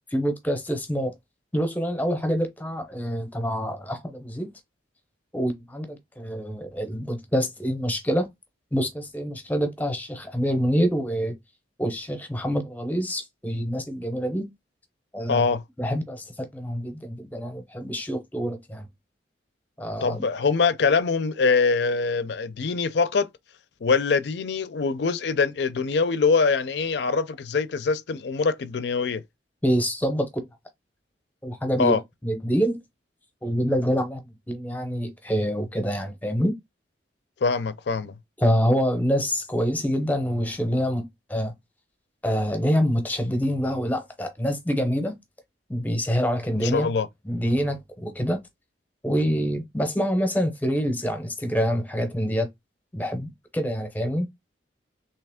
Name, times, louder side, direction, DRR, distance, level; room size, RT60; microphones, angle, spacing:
voice 1, 0.1-1.1 1.5-4.5 5.3-8.3 8.7-11.4 11.8-14.5 15.1-15.5 15.8-18.9 19.8-20.2 29.6-30.5 31.4-32.8 33.4-36.6 38.4-41.0 41.3-41.5 42.2-45.2 45.7-46.9 47.3-48.4 49.0-52.5 52.9-54.3, equal, 10° left, 0.7 m, -26 dB
voice 2, 15.3-15.6 20.0-23.3 23.8-29.2 31.8-32.0 37.4-38.1 46.6-47.1, left 4 dB, 65° left, 0.4 m, -23 dB
3.3 x 2.8 x 3.5 m
head